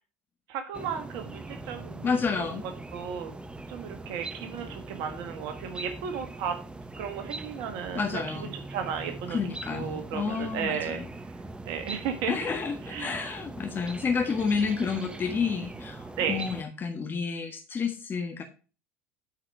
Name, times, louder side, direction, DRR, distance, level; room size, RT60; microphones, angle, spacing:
voice 1, 0.5-2.1 2.9-3.3 3.7-6.5 7.0-9.4 9.7-11.0 11.6-12.3 12.9-13.3 16.2-16.4, right 7 dB, 65° right, 6 dB, 1.3 m, -34 dB
sound 1, 0.7-16.6, right 2 dB, 15° right, 0.9 m, -41 dB
voice 2, 2.0-2.6 7.9-8.5 9.3-11.1 12.3-18.4, left 5 dB, 30° left, 3 dB, 1.5 m, -30 dB
8.9 x 4.8 x 5.7 m, 0.35 s
hypercardioid pair, 80°, 7 cm